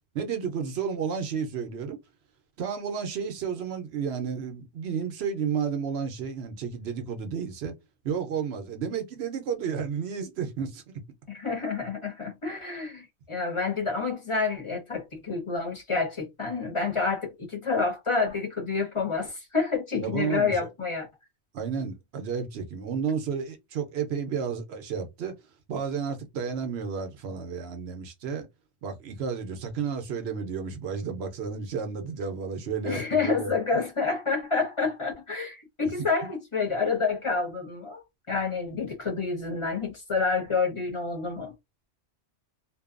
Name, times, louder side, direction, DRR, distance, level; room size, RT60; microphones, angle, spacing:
voice 1, 0.1-2.0 2.6-7.7 8.0-10.8 20.0-20.7 21.5-25.3 25.7-28.5 28.8-33.5, right 6 dB, 70° right, 0.8 m, -32 dB
voice 2, 11.3-21.1 32.8-41.5, left 4 dB, 30° left, 0.7 m, -28 dB
2.6 x 2.2 x 2.4 m
omnidirectional pair, 1.2 m